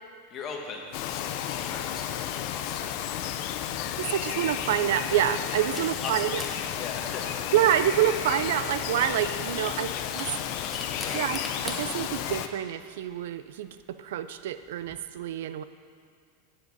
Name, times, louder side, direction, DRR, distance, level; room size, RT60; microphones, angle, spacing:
voice 1, 0.3-3.0 5.7-6.5 6.8-7.5 9.9-11.3, left 4 dB, 35° left, 1 dB, 1.6 m, -40 dB
Bird vocalization bird call bird song, 0.9-12.5, left 10 dB, 55° left, 0.5 m, -32 dB
voice 2, 4.0-6.4 7.5-10.3 11.1-11.4 11.6-15.6, right 11 dB, 75° right, 12 dB, 0.4 m, -27 dB
sound 1, 4.9-15.0, left 1 dB, 5° left, 1.2 m, -44 dB
10.5 x 7.4 x 5.3 m, 2.2 s
supercardioid pair, 130°, 0 cm